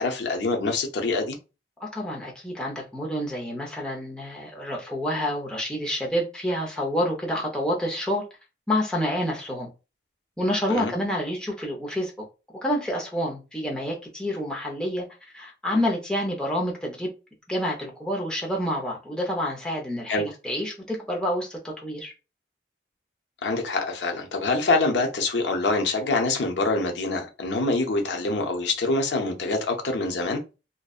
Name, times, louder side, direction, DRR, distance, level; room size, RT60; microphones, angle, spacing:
voice 1, 0.0-1.4 10.7-10.9 20.1-20.2 23.4-30.4, left 3 dB, 80° left, 0.6 m, -25 dB
voice 2, 1.8-8.2 8.7-9.7 10.4-12.1 12.6-15.1 15.3-17.1 17.5-22.1, equal, 5° left, 0.5 m, -28 dB
2.6 x 2.1 x 2.3 m
head